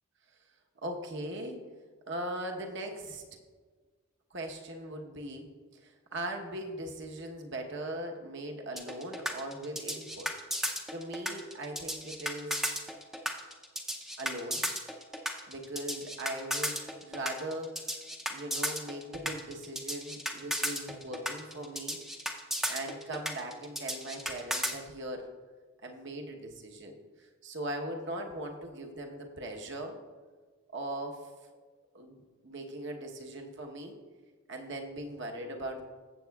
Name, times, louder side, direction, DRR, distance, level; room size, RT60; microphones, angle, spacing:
voice 1, 0.8-1.6 2.1-3.2 4.3-5.5 5.8-10.3 10.9-12.7 14.2-14.7 15.5-17.9 18.3-22.0 22.7-25.3 25.8-30.0 30.7-31.2 31.9-33.9 34.5-35.8, right 1 dB, 55° right, 2 dB, 1.0 m, -39 dB
sound 1, 8.8-24.7, equal, ahead, 0.6 m, -34 dB
15.0 x 7.5 x 2.3 m, 1.5 s
head